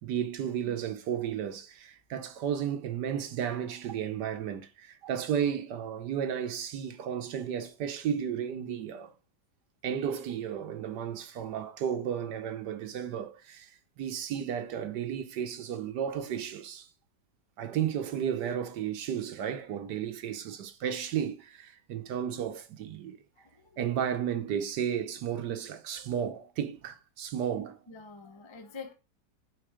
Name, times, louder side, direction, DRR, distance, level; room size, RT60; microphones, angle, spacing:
voice 1, 0.0-9.1 9.8-16.9 17.6-23.2 23.8-27.8, right 9 dB, 75° right, 1.4 m, -33 dB
voice 2, 23.4-23.8 27.9-28.9, left 4 dB, 20° left, 0.8 m, -46 dB
9.3 x 4.2 x 4.9 m
omnidirectional pair, 1.9 m